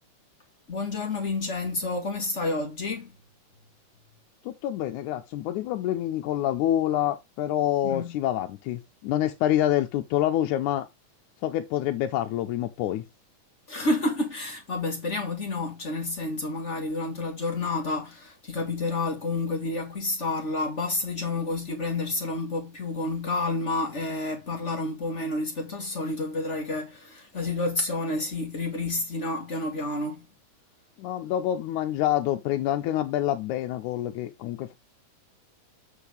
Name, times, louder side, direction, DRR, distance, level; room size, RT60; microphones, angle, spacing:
voice 1, 0.7-3.1 7.8-8.1 13.7-30.3, left 2 dB, 50° left, 0.8 m, -29 dB
voice 2, 4.5-10.9 11.4-13.1 31.0-34.7, left 12 dB, 75° left, 2.0 m, -27 dB
7.8 x 6.5 x 3.4 m
omnidirectional pair, 3.8 m